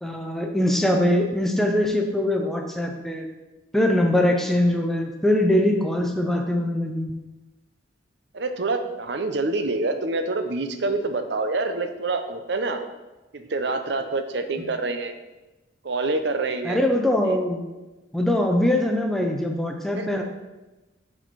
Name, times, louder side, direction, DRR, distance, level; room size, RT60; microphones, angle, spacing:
voice 1, 0.0-3.3 3.7-7.2 16.6-17.7 18.1-20.2, left 1 dB, ahead, 3 dB, 0.5 m, -22 dB
voice 2, 8.3-12.8 13.3-15.1 15.8-16.8 17.2-17.4 20.0-20.1, right 3 dB, 60° right, 7 dB, 0.6 m, -26 dB
6.6 x 4.3 x 4.6 m, 1.1 s
head